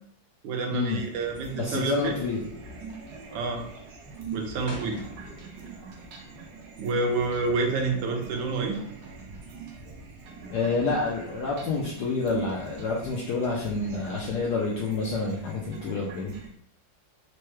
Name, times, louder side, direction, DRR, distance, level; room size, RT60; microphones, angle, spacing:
voice 1, 0.4-2.1 3.3-3.6 4.3-5.0 6.8-8.8, right 3 dB, 90° right, 3 dB, 1.4 m, -28 dB
sound 1, 0.9-16.5, right 5 dB, 65° right, 1.1 m, -42 dB
voice 2, 1.6-2.4 10.5-16.3, left 4 dB, 70° left, -3 dB, 1.1 m, -28 dB
sound 2, 4.7-5.9 6.2-7.7, equal, 25° left, 0.6 m, -45 dB
4.6 x 2.1 x 3.1 m, 0.66 s
omnidirectional pair, 2.1 m